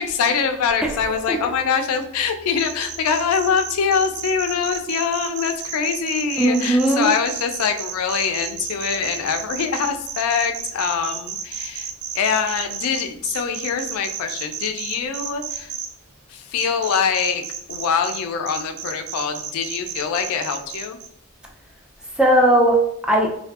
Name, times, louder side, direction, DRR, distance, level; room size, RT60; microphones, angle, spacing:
voice 1, 0.0-15.7 16.3-17.4 17.7-21.0, left 6 dB, 80° left, 6 dB, 0.3 m, -24 dB
voice 2, 0.8-1.4 6.4-7.1 22.2-23.3, right 1 dB, 5° right, 0 dB, 0.3 m, -18 dB
sound 1, 2.6-15.9 16.6-18.2 18.5-21.1, right 8 dB, 85° right, 0.4 m, -32 dB
2.5 x 2.2 x 2.3 m, 0.74 s
head